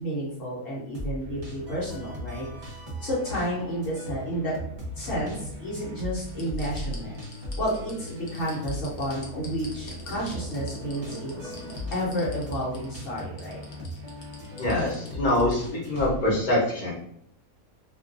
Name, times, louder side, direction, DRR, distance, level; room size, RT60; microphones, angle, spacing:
voice 1, 0.0-2.5 3.0-4.5 5.0-7.1 7.6-11.5 11.9-13.6, equal, 65° left, -6 dB, 1.1 m, -31 dB
sound 1, 0.9-16.3, left 1 dB, 30° right, 0.5 m, -38 dB
sound 2, 4.7-5.8 6.3-15.5 15.9-16.0, left 3 dB, 85° left, 0.4 m, -45 dB
sound 3, 8.1-12.8, right 2 dB, 65° right, 0.7 m, -44 dB
voice 2, 14.6-16.9, left 1 dB, 35° left, -6 dB, 0.9 m, -24 dB
2.5 x 2.3 x 2.4 m, 0.68 s
omnidirectional pair, 1.5 m